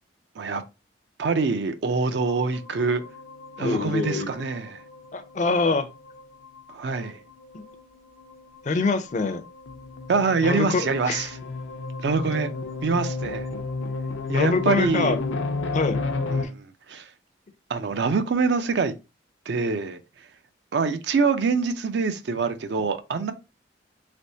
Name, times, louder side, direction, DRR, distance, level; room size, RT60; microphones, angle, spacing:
voice 1, 1.2-3.0 3.6-4.8 6.7-7.2 10.1-11.4 12.0-12.5 12.8-13.5 14.3-15.2 16.3-17.1 17.7-18.9 19.5-20.0 20.7-23.3, right 4 dB, 60° right, 0.4 m, -25 dB
sound 1, 2.2-16.4, left 3 dB, 90° left, 0.5 m, -33 dB
voice 2, 3.6-4.3 5.1-5.9 7.5-7.6 8.6-9.4 10.4-11.3 14.3-15.2 15.7-16.0, left 3 dB, 40° left, 0.4 m, -24 dB
3.4 x 3.0 x 2.7 m
head